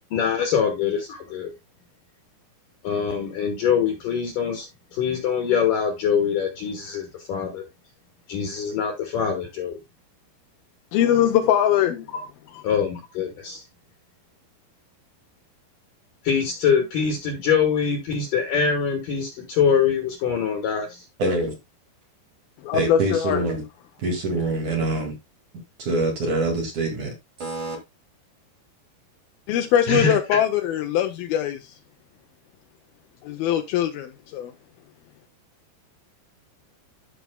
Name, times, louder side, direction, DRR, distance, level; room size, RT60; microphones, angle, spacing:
voice 1, 0.1-1.5 2.8-7.6 8.3-9.8 12.1-12.2 12.6-13.6 16.2-20.9 29.9-30.4, left 6 dB, 65° left, 2.4 m, -24 dB
voice 2, 10.9-12.1 22.6-23.4 29.5-31.7 33.2-34.5, left 10 dB, 80° left, 2.2 m, -21 dB
voice 3, 21.2-21.5 22.7-23.6 24.0-25.1 25.8-27.1 27.4-27.8, right 2 dB, 50° right, 3.1 m, -25 dB
14.0 x 6.1 x 2.2 m
omnidirectional pair, 5.1 m